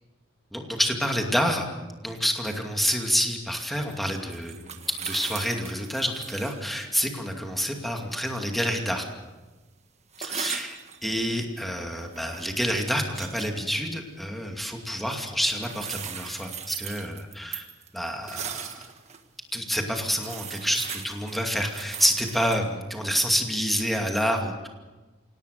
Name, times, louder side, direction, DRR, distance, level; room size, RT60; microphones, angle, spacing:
voice 1, 0.5-1.7 2.0-9.1 10.2-17.6 17.9-18.9 19.5-24.7, equal, ahead, 2 dB, 2.5 m, -28 dB
sound 1, 3.9-6.6 6.9-7.0 10.1-11.0 11.9-12.5 13.0-13.5 15.5-19.2 19.7-19.8 20.1-22.7, right 8 dB, 35° right, 1.6 m, -38 dB
26.5 x 18.0 x 6.7 m, 1.2 s
head